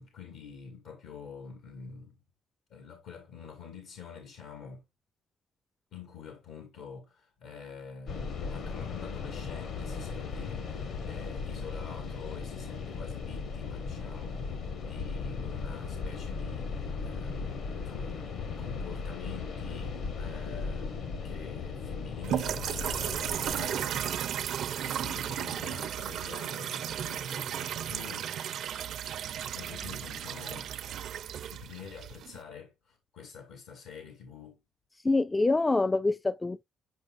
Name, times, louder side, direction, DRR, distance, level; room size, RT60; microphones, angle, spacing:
voice 1, 0.0-2.2 2.7-4.8 5.9-18.2 18.6-28.3 29.5-30.7 31.5-34.6, left 6 dB, 85° left, 2.3 m, -47 dB
sound 1, 8.1-23.7, left 5 dB, 70° left, 1.5 m, -37 dB
sound 2, 22.2-32.4, right 10 dB, 75° right, 0.6 m, -34 dB
voice 2, 35.0-36.6, left 3 dB, 20° left, 0.3 m, -25 dB
8.8 x 5.2 x 2.5 m
cardioid pair, 90°, 0 cm